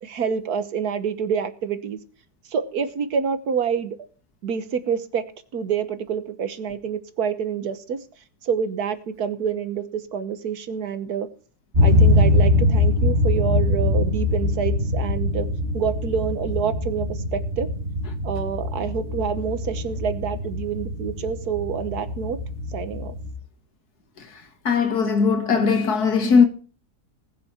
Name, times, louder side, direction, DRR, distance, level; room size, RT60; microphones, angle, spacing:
voice 1, 0.0-2.0 2.5-3.9 4.4-5.2 5.5-8.0 8.4-11.3 11.8-15.5 15.7-17.7 18.2-22.4 22.7-23.1 26.2-26.4, right 7 dB, 75° right, 1.7 m, -27 dB
sound 1, 11.7-23.3, left 1 dB, 45° right, 3.1 m, -22 dB
voice 2, 24.7-26.5, left 5 dB, 75° left, 2.3 m, -19 dB
20.5 x 6.9 x 4.3 m
omnidirectional pair, 1.7 m